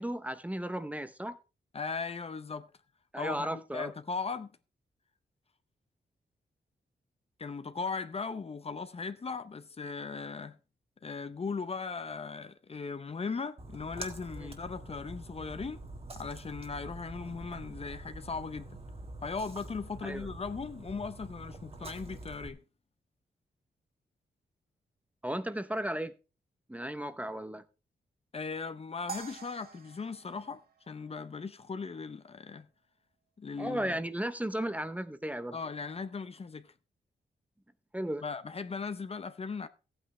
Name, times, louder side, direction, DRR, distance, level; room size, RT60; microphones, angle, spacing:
voice 1, 0.0-1.4 3.1-3.9 14.4-14.5 20.0-20.3 25.2-26.1 26.7-27.6 33.6-35.6 37.9-38.2, right 1 dB, 10° right, 0.7 m, -35 dB
voice 2, 1.7-2.7 3.2-4.5 7.4-10.6 11.0-15.8 16.2-18.8 19.2-22.6 28.3-32.7 33.4-34.0 35.5-36.7 38.2-39.7, left 4 dB, 35° left, 0.7 m, -38 dB
Splash splatter, 13.6-22.5, right 2 dB, 35° right, 1.6 m, -45 dB
sound 1, 29.1-31.5, right 5 dB, 60° right, 1.4 m, -46 dB
15.0 x 8.8 x 3.2 m
wide cardioid pair, 120°, 17 cm